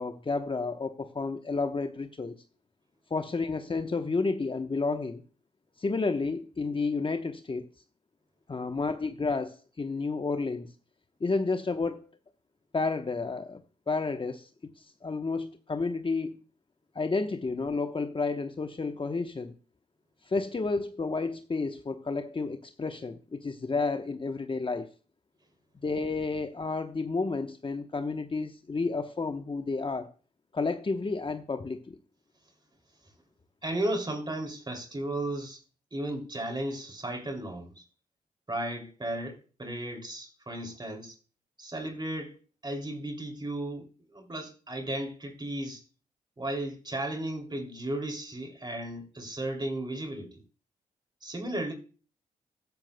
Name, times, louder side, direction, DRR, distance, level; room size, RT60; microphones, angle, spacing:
voice 1, 0.0-2.3 3.1-5.2 5.8-7.7 8.5-10.7 11.2-12.1 12.7-14.5 14.8-16.4 16.9-19.5 20.2-24.9 25.8-30.1 30.5-32.0, left 3 dB, 35° left, 1.0 m, -31 dB
voice 2, 33.6-35.6 35.9-37.8 38.5-41.1 41.6-42.4 42.6-43.8 44.1-45.8 46.4-50.4 51.2-51.7, right 1 dB, 30° right, 2.7 m, -34 dB
14.0 x 10.5 x 2.2 m
supercardioid pair, 45°, 16 cm